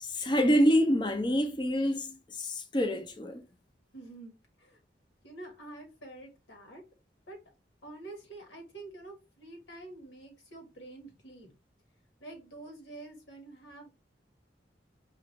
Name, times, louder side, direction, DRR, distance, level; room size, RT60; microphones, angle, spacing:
voice 1, 0.0-3.4, equal, 25° left, 0.5 m, -27 dB
voice 2, 3.9-4.3 4.6-4.8 5.2-6.8 7.3-7.4 7.8-11.5 12.2-13.9, right 2 dB, 80° left, 1.6 m, -47 dB
5.0 x 2.4 x 3.1 m
head